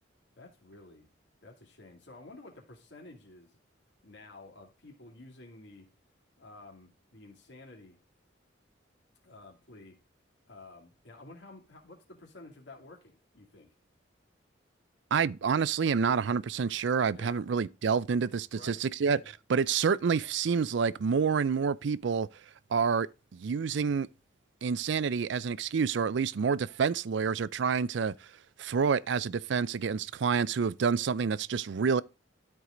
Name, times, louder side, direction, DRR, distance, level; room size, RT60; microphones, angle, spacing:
voice 1, 0.4-1.1 1.4-3.6 4.0-5.9 6.4-8.0 9.2-10.0 10.5-13.7 17.1-17.4 18.5-18.8 19.1-19.3, left 2 dB, 65° left, 2.6 m, -51 dB
voice 2, 15.1-22.3 22.7-23.1 23.3-24.1 24.6-28.1 28.6-32.0, right 6 dB, 70° right, 0.4 m, -28 dB
12.5 x 4.7 x 3.8 m
head